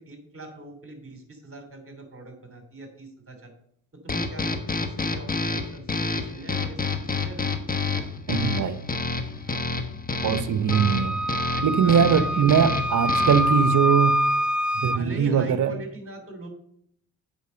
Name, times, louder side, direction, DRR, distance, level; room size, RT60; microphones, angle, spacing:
voice 1, 0.0-3.5 4.0-6.8 7.1-7.5 11.5-14.0 14.9-16.5, right 2 dB, 35° right, 5 dB, 3.0 m, -41 dB
sound 1, 4.1-13.6, left 3 dB, 20° left, 1.3 m, -29 dB
voice 2, 8.3-8.8 10.2-11.2 11.6-14.1 14.7-15.7, right 7 dB, 50° right, 13 dB, 1.0 m, -21 dB
Wind instrument woodwind instrument, 10.7-15.0, equal, 5° right, 0.3 m, -25 dB
8.0 x 5.3 x 6.5 m, 0.68 s
hypercardioid pair, 55°, 40 cm